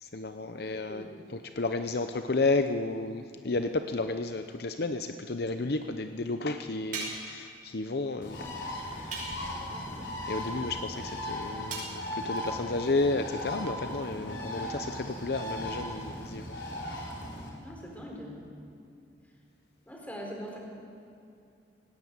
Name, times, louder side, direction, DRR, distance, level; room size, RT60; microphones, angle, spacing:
voice 1, 0.0-1.0 1.3-8.4 8.7-9.3 10.3-16.6, left 3 dB, 60° left, 8 dB, 0.7 m, -32 dB
voice 2, 0.5-1.1 9.5-9.9 17.6-18.4 19.9-20.6, equal, 10° left, -1 dB, 4.1 m, -43 dB
sound 1, 6.9-7.4 9.1-9.6 11.7-12.0, right 3 dB, 50° right, 5.7 m, -37 dB
Bird, 8.2-17.5, left 1 dB, 90° left, 4.2 m, -37 dB
18.5 x 18.0 x 8.2 m, 2.5 s
head